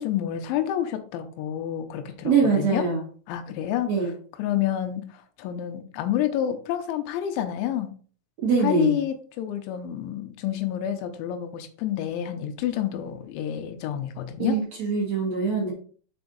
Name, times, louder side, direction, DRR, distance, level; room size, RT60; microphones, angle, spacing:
voice 1, 0.0-2.9 3.3-3.9 4.4-7.9 8.6-14.6, left 11 dB, 80° left, 6 dB, 2.9 m, -29 dB
voice 2, 2.2-3.0 3.9-4.1 8.4-9.0 14.4-15.7, right 5 dB, 55° right, -3 dB, 2.0 m, -23 dB
7.0 x 4.8 x 3.9 m, 0.43 s
omnidirectional pair, 6.0 m